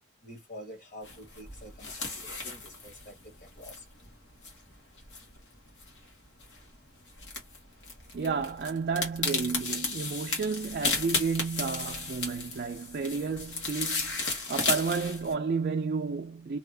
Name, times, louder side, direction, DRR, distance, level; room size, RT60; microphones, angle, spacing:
voice 1, 0.2-3.8, equal, 45° left, 1.5 m, -47 dB
sound 1, 1.0-15.3, left 3 dB, 70° left, 1.3 m, -35 dB
voice 2, 8.1-16.6, right 5 dB, 50° right, 0.4 m, -31 dB
2.7 x 2.5 x 3.3 m
head